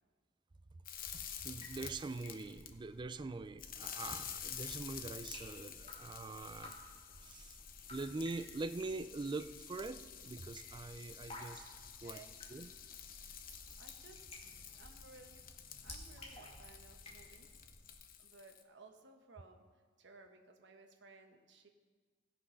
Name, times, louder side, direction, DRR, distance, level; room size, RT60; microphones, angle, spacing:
sound 1, 0.9-2.7 3.6-18.6, left 9 dB, 50° left, 0.8 m, -50 dB
Drip, 0.9-17.9, left 1 dB, 30° left, 2.1 m, -55 dB
voice 1, 1.4-6.8 7.2-7.6 7.9-11.7 12.0-12.2 12.5-12.7, right 3 dB, 25° right, 12 dB, 0.4 m, -43 dB
voice 2, 12.0-12.4 13.8-15.6 15.8-17.6 18.2-19.6 20.0-21.7, right 3 dB, 65° right, 4 dB, 1.2 m, -59 dB
16.5 x 6.1 x 5.6 m, 1.5 s
head